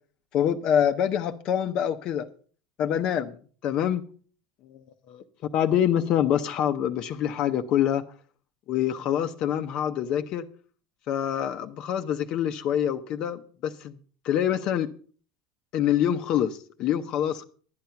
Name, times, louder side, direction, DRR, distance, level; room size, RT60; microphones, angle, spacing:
voice 1, 0.3-2.3 2.8-4.0 4.7-4.8 5.1-5.2 5.5-8.0 8.7-10.4 11.1-13.9 14.2-14.9 15.7-17.4, left 10 dB, 45° left, 6 dB, 0.7 m, -25 dB
11.5 x 9.1 x 5.7 m, 0.43 s
supercardioid pair, 145°, 2 cm